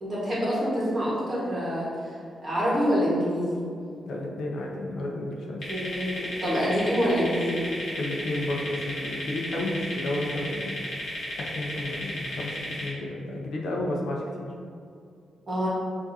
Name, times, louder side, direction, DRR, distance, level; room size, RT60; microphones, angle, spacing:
voice 1, 0.0-2.1 2.4-3.6 5.7-7.6 15.5-15.7, equal, 20° right, -8 dB, 1.3 m, -26 dB
voice 2, 4.1-5.6 7.9-10.7 11.4-14.5, left 1 dB, 65° left, -1 dB, 0.5 m, -32 dB
sound 1, 5.6-12.9, left 1 dB, 40° left, 1.2 m, -34 dB
6.9 x 2.5 x 2.7 m, 2.4 s
wide cardioid pair, 180°, 0 cm